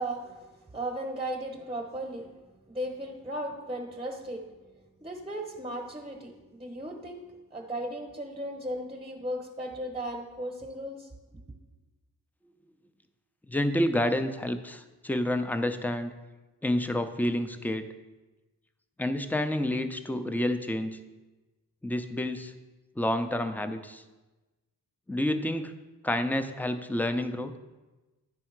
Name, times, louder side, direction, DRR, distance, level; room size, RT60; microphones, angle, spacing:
voice 1, 0.0-2.4 2.7-4.4 5.0-7.3 7.5-11.4, right 1 dB, 10° right, 0 dB, 1.0 m, -36 dB
voice 2, 13.5-16.1 16.6-17.9 19.0-21.0 21.8-22.5 23.0-24.0 25.1-25.7 26.0-27.5, left 1 dB, 5° left, 8 dB, 0.5 m, -29 dB
10.0 x 3.5 x 4.5 m, 1.2 s
cardioid pair, 55°, 38 cm